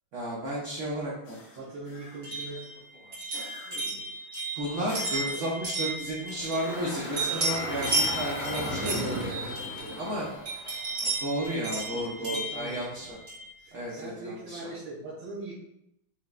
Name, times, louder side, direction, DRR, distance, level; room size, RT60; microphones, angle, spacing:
voice 1, 0.1-1.3 4.5-10.3 11.0-13.1 13.7-14.7, right 1 dB, 70° right, -6 dB, 0.7 m, -33 dB
sound 1, 1.2-2.5 3.3-4.1 4.9-5.7, left 2 dB, 85° left, 1.5 m, -46 dB
voice 2, 1.6-2.6 3.8-4.1 4.7-4.9 9.8-10.0 11.9-13.1 13.6-15.5, right 2 dB, 85° right, -10 dB, 1.8 m, -41 dB
sound 2, 2.2-6.9 7.2-10.1 10.5-13.5, right 2 dB, 45° right, 1.6 m, -33 dB
Engine, 6.3-11.5, equal, 65° left, 1.1 m, -36 dB
5.2 x 2.0 x 2.3 m, 0.83 s
omnidirectional pair, 2.0 m